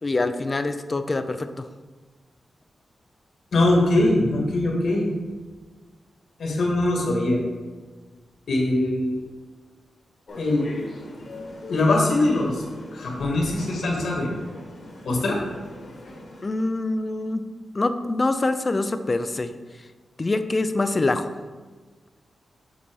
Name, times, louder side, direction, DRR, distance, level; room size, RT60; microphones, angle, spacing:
voice 1, 0.0-1.7 16.4-17.4 17.7-19.5 20.2-21.3, left 2 dB, 35° left, 10 dB, 0.4 m, -25 dB
voice 2, 3.5-5.1 6.4-7.4 8.5-9.2 10.4-10.6 11.7-12.6 12.9-14.3 15.1-15.4, left 2 dB, 75° left, -1 dB, 1.8 m, -22 dB
sound 1, 10.3-16.4, left 2 dB, 55° left, 1.4 m, -40 dB
7.3 x 4.1 x 4.6 m, 1.4 s
wide cardioid pair, 95°, 0 cm